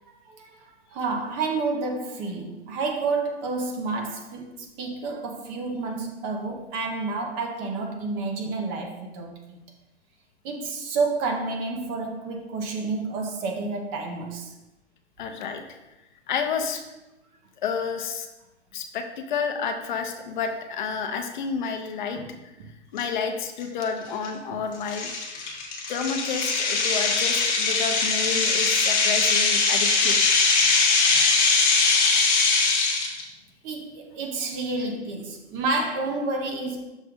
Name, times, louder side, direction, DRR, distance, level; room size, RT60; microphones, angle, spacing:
voice 1, 0.2-9.6 10.4-14.5 22.2-22.3 22.6-22.7 24.5-24.6 29.6-29.9 30.6-30.7 31.5-32.4 33.6-36.8, right 3 dB, 25° right, 2 dB, 0.8 m, -30 dB
voice 2, 15.2-15.6 16.3-16.8 17.6-18.3 18.7-22.2 22.9-25.1 25.9-30.2, left 6 dB, 45° left, 5 dB, 0.7 m, -30 dB
sound 1, 23.0-23.1 23.6-23.8 24.2-24.3 24.9-33.2, left 4 dB, 25° left, 1.1 m, -21 dB
6.3 x 3.3 x 5.2 m, 0.99 s
figure-of-eight pair, 125°, 34 cm